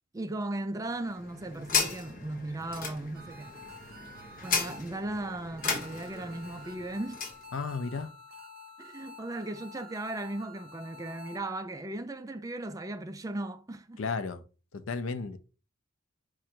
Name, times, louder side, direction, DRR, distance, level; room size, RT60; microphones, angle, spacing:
voice 1, 0.1-3.5 4.4-7.2 8.8-14.0, right 2 dB, 15° right, 0.3 m, -37 dB
sound 1, 0.8-7.4, left 5 dB, 45° left, 0.9 m, -35 dB
sound 2, 3.1-5.1 5.6-11.4, left 3 dB, 50° right, 0.7 m, -49 dB
voice 2, 7.5-8.1 14.0-14.4 14.7-15.4, left 4 dB, 75° left, 0.5 m, -33 dB
4.9 x 2.5 x 4.3 m
head